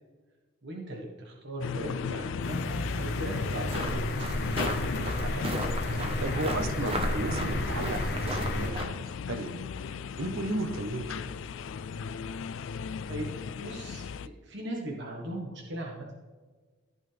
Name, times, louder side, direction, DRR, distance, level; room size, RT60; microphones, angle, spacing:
voice 1, 0.6-4.1 13.1-13.3 13.6-16.1, right 1 dB, 55° right, -1 dB, 1.4 m, -38 dB
sound 1, 1.6-14.3, left 6 dB, 65° left, 0.3 m, -36 dB
sound 2, 2.4-8.7, left 1 dB, 50° left, 1.2 m, -34 dB
sound 3, 3.6-8.8, right 1 dB, 30° right, 1.0 m, -34 dB
voice 2, 4.9-5.6 5.9-9.0 9.3-9.5 10.2-11.3, right 2 dB, 75° right, 8 dB, 1.0 m, -35 dB
15.0 x 5.4 x 3.4 m, 1.4 s
head